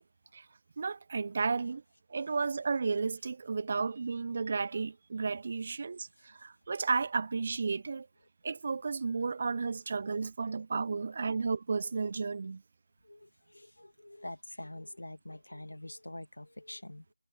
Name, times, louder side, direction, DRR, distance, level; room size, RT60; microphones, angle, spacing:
voice 1, 0.8-1.8 2.1-8.1 8.4-12.6, right 4 dB, 30° right, 0.6 m, -33 dB
voice 2, 13.0-17.1, left 1 dB, 65° left, 1.8 m, -46 dB
figure-of-eight pair, 165°, 0 cm